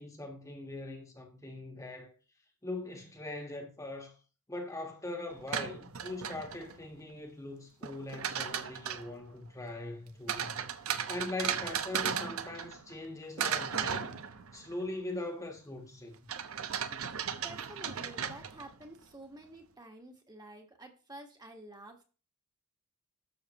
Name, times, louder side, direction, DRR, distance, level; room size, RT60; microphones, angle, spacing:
voice 1, 0.0-2.1 2.6-4.2 4.5-10.5 11.1-14.2 14.5-16.2, left 2 dB, 15° left, 1.4 m, -41 dB
sound 1, 5.3-6.8 7.8-9.1 10.3-13.1 13.4-14.7 16.3-18.8, right 8 dB, 70° right, 0.9 m, -36 dB
voice 2, 17.3-22.0, right 2 dB, 20° right, 1.5 m, -50 dB
12.5 x 6.9 x 3.0 m
head